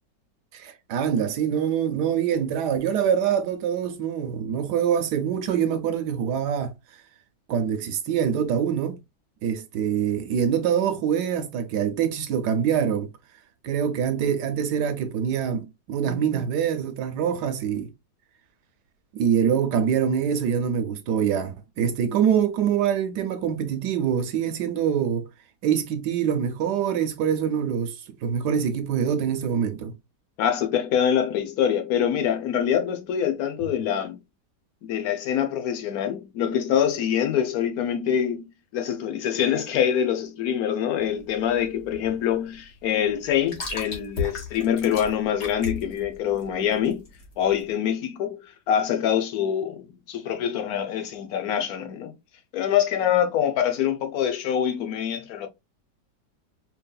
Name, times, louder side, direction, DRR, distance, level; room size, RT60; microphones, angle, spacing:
voice 1, 0.5-6.7 7.5-9.0 9.4-13.1 13.6-17.9 19.1-25.3 25.6-29.9, right 8 dB, 75° right, 1.2 m, -25 dB
voice 2, 30.4-34.2 34.8-38.4 38.7-47.0 47.4-48.4 48.7-52.1 52.5-55.5, left 9 dB, 65° left, 1.1 m, -25 dB
sound 1, 40.9-47.7, left 4 dB, 40° left, 1.4 m, -36 dB
4.6 x 3.2 x 2.2 m
omnidirectional pair, 1.9 m